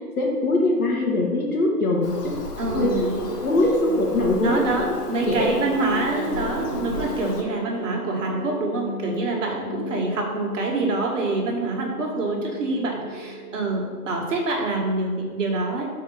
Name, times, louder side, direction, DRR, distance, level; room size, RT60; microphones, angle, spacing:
voice 1, 0.2-2.4 2.7-3.1 3.4-4.9 5.2-5.5, left 2 dB, 65° left, -1 dB, 2.2 m, -22 dB
Bird vocalization bird call bird song, 2.0-7.4, left 4 dB, 90° left, 1.5 m, -36 dB
sound 1, 2.6-15.4, equal, 10° right, 1.0 m, -34 dB
voice 2, 2.6-3.2 4.4-15.9, right 3 dB, 50° right, -1 dB, 1.8 m, -26 dB
5.7 x 4.5 x 6.4 m, 1.5 s
hypercardioid pair, 165°, 46 cm